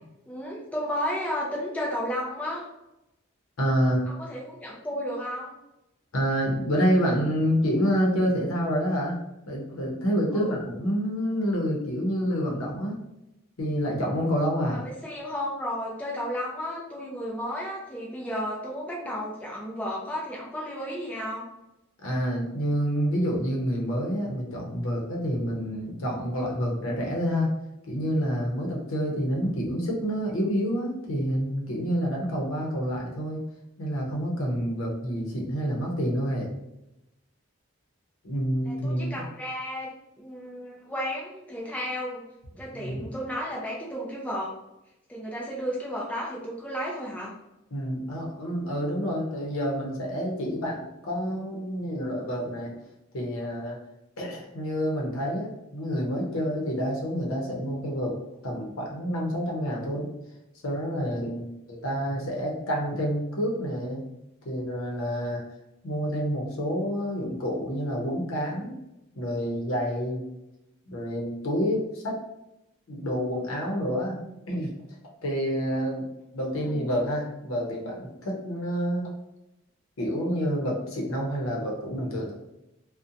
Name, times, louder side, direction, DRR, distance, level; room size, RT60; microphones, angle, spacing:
voice 1, 0.3-2.6 4.1-5.5 10.3-10.6 14.7-21.5 38.7-39.9 40.2-42.2 42.6-44.5 45.1-47.3 76.7-76.8, equal, 5° left, -5 dB, 0.4 m, -33 dB
voice 2, 3.6-4.0 6.1-9.2 9.5-13.0 13.6-14.8 22.0-27.5 27.9-33.4 33.8-36.5 38.2-39.2 42.7-43.1 47.7-52.7 53.1-53.8 54.2-58.2 58.4-60.1 60.6-64.0 64.4-65.4 65.8-68.8 69.2-70.2 70.9-72.2 72.9-74.2 74.5-74.7 75.2-79.1 80.0-82.3, equal, 75° left, -2 dB, 0.7 m, -28 dB
2.6 x 2.1 x 2.6 m, 0.91 s
head